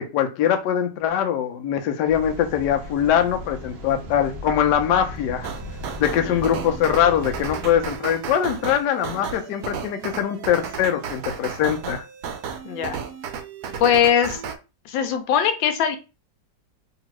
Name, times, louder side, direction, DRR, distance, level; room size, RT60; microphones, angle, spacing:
voice 1, 0.0-5.5 6.0-12.0, left 9 dB, 75° left, 6 dB, 1.1 m, -22 dB
sound 1, 2.1-8.0, left 1 dB, 85° right, 0.5 m, -36 dB
sound 2, 5.4-14.5, right 6 dB, 70° right, 0.9 m, -34 dB
voice 2, 12.6-13.0 13.8-14.4 14.8-16.0, left 8 dB, 90° left, 7 dB, 1.3 m, -21 dB
2.9 x 2.8 x 2.9 m, 0.30 s
omnidirectional pair, 2.0 m